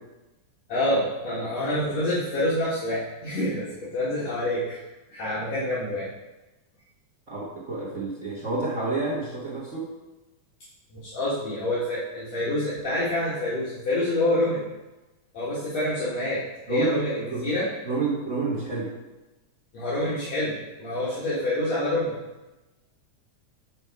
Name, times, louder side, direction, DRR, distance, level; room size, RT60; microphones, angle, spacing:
voice 1, 0.7-4.8 5.1-6.1 10.9-14.6 15.3-17.7 19.7-22.2, left 1 dB, 65° left, -11 dB, 2.6 m, -27 dB
voice 2, 7.3-9.9 16.7-17.0 17.3-17.4 17.8-18.9, right 3 dB, 55° right, -6 dB, 0.8 m, -29 dB
8.0 x 3.4 x 4.6 m, 1.1 s
omnidirectional pair, 3.4 m